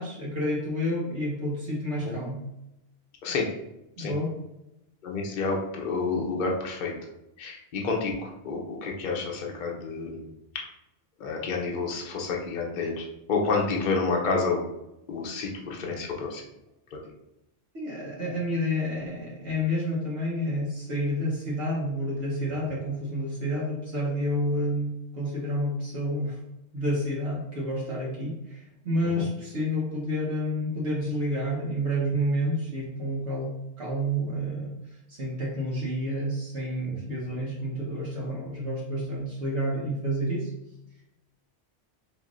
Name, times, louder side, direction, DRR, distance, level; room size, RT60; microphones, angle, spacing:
voice 1, 0.0-2.4 4.0-4.3 17.7-26.4 26.7-34.8 35.1-40.5, equal, 65° right, -4 dB, 1.2 m, -29 dB
voice 2, 5.0-6.9 7.4-10.3 11.2-14.7 15.1-16.4 16.9-17.0 29.2-29.3, left 4 dB, 50° left, -1 dB, 0.7 m, -29 dB
4.6 x 3.3 x 2.5 m, 0.88 s
omnidirectional pair, 1.2 m